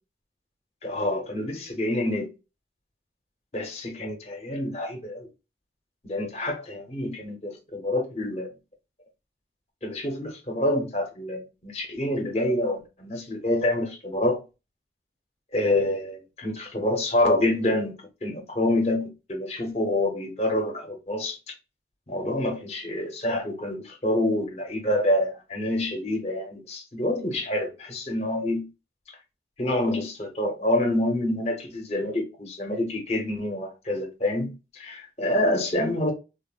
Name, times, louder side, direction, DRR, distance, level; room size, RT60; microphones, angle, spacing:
voice 1, 0.8-2.3 3.5-5.3 6.0-8.5 9.8-14.4 15.5-17.9 18.2-21.4 22.1-28.6 29.6-36.1, left 1 dB, 35° left, 0.7 m, -27 dB
3.5 x 2.0 x 2.3 m
head